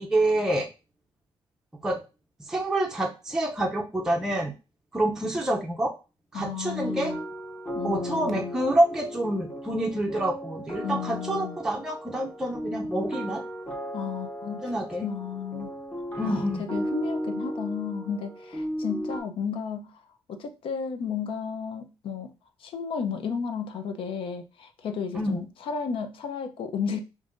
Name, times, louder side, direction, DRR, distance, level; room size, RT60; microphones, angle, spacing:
voice 1, 0.1-0.7 1.8-2.0 2.5-4.5 4.9-5.9 6.3-7.1 7.8-13.4 14.6-15.0 16.2-16.6 25.1-25.4, right 1 dB, 5° right, 0.5 m, -27 dB
voice 2, 6.3-7.2 7.7-8.5 10.8-11.6 13.9-15.7 16.2-20.0 20.3-22.3 22.6-27.0, left 6 dB, 65° left, 0.6 m, -33 dB
sound 1, 6.7-19.2, equal, 20° left, 0.9 m, -35 dB
5.4 x 2.6 x 2.5 m
cardioid pair, 135°, 10 cm